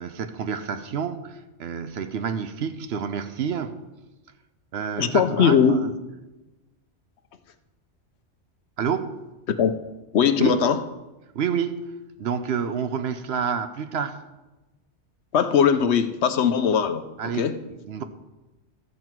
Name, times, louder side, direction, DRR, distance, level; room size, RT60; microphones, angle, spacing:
voice 1, 0.0-3.8 4.7-5.9 8.8-9.2 10.4-10.5 11.3-11.9 12.2-14.2 17.2-18.0, right 7 dB, 65° right, 0.9 m, -29 dB
voice 2, 5.0-5.8 9.5-9.7 10.1-10.8 15.3-17.1 17.3-17.6, left 7 dB, 70° left, 0.9 m, -20 dB
14.0 x 7.6 x 4.6 m
omnidirectional pair, 1.2 m